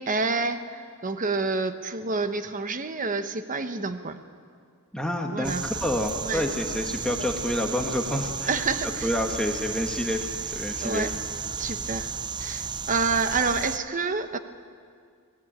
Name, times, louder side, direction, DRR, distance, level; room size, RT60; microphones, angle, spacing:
voice 1, 0.0-4.2 5.3-5.6 6.2-6.4 8.5-9.1 10.8-11.1 11.5-12.1 12.4-14.4, right 4 dB, 35° right, 9 dB, 1.1 m, -28 dB
voice 2, 4.9-8.5 9.0-10.3 10.5-11.0, left 1 dB, 5° left, 1 dB, 1.3 m, -28 dB
sound 1, 5.4-13.8, right 5 dB, 20° right, 0.5 m, -33 dB
24.5 x 19.5 x 8.8 m, 2.1 s
head